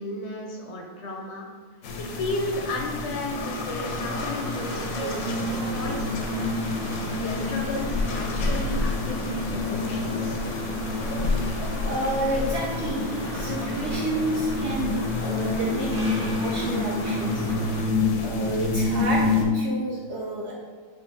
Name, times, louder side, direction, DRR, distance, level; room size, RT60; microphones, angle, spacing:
voice 1, 0.0-1.5 2.0-6.5 7.2-10.4, left 1 dB, 65° left, 1 dB, 0.7 m, -34 dB
sound 1, 1.8-19.4, left 3 dB, 90° left, 1.2 m, -28 dB
sound 2, 3.3-17.8, right 1 dB, 35° right, 0.8 m, -36 dB
voice 2, 11.8-17.4 18.2-20.5, right 2 dB, 70° right, -2 dB, 0.6 m, -30 dB
4.5 x 2.4 x 3.5 m, 1.5 s
omnidirectional pair, 1.6 m